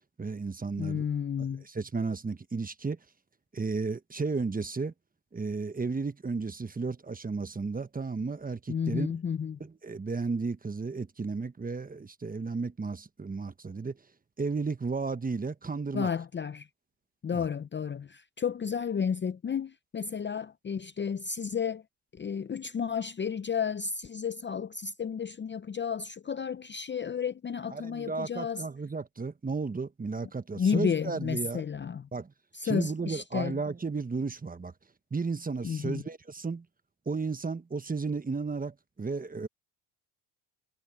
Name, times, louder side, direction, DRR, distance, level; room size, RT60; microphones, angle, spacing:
voice 1, 0.2-1.1 1.6-3.0 3.5-4.9 5.3-9.1 9.6-14.0 14.4-16.1 17.3-17.4 27.7-31.6 32.1-32.3 32.6-34.7 35.1-36.7 37.0-39.5, right 4 dB, 20° right, 1.2 m, -33 dB
voice 2, 0.8-1.6 8.7-9.6 15.9-16.7 17.2-21.8 22.1-28.7 30.6-32.1 32.5-33.6 35.6-36.0, left 7 dB, 25° left, 0.6 m, -32 dB
supercardioid pair, 80°, 46 cm